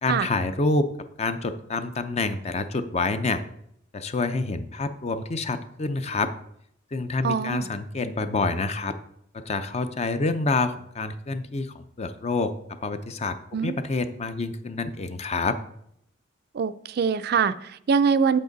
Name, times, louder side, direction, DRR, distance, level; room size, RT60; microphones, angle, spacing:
voice 1, 0.0-3.4 3.9-6.3 6.9-9.0 9.3-15.6, left 3 dB, 35° left, 10 dB, 0.5 m, -27 dB
voice 2, 7.2-7.7 13.5-13.8 16.5-18.4, right 6 dB, 55° right, 13 dB, 0.4 m, -23 dB
8.2 x 7.6 x 3.9 m, 0.72 s
head